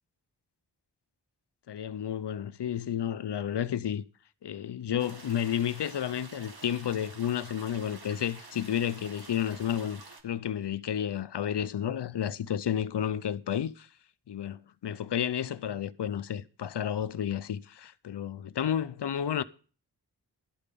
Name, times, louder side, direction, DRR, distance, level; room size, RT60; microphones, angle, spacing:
voice 1, 1.7-4.0 4.4-13.9 14.3-19.4, left 9 dB, 75° left, 0.7 m, -31 dB
sound 1, 5.0-10.2, right 3 dB, 60° right, 1.8 m, -49 dB
12.5 x 5.2 x 8.4 m
cardioid pair, 45°, 41 cm